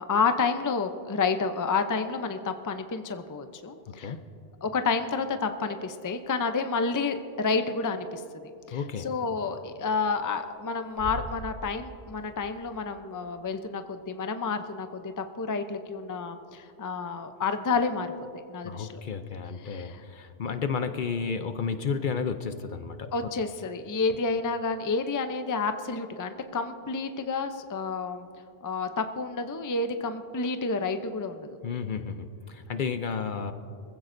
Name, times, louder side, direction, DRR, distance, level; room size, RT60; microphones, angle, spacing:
voice 1, 0.0-4.1 4.6-8.2 8.7-18.1 18.5-19.0 19.6-20.0 23.1-28.3 28.6-31.5, left 4 dB, 25° left, 8 dB, 0.5 m, -30 dB
voice 2, 3.9-4.2 8.7-9.1 18.6-23.3 31.6-33.5, left 6 dB, 55° left, 9 dB, 0.7 m, -32 dB
sound 1, 5.8-5.9 6.7-6.8 7.6-7.7 9.2-9.6 9.9-10.4 10.7-12.0 12.3-12.4 12.5-12.8, equal, 85° right, 3.9 m, -41 dB
24.5 x 15.5 x 2.6 m, 2.6 s
omnidirectional pair, 1.0 m